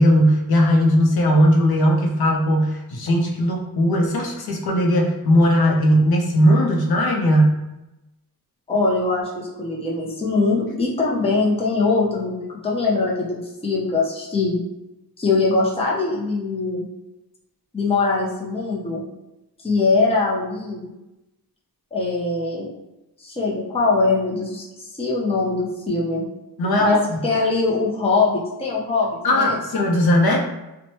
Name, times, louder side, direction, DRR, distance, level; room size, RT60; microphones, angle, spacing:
voice 1, 0.0-7.5 26.6-27.2 29.2-30.4, equal, 75° left, 1 dB, 0.6 m, -18 dB
voice 2, 8.7-14.6 15.2-16.9 17.7-19.0 19.6-20.9 21.9-22.7 23.2-26.2 26.8-29.6, left 3 dB, 15° left, -4 dB, 0.5 m, -22 dB
3.0 x 2.1 x 2.7 m, 0.97 s
wide cardioid pair, 160°, 37 cm